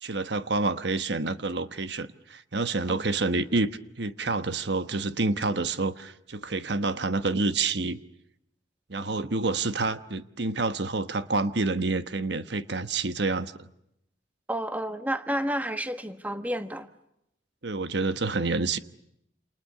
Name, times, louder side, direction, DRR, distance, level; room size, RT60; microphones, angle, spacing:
voice 1, 0.0-3.7 4.0-8.0 8.9-13.7 17.6-18.8, right 3 dB, 65° right, 1.2 m, -28 dB
voice 2, 14.5-16.9, equal, 10° right, 1.3 m, -30 dB
29.0 x 28.5 x 6.8 m
head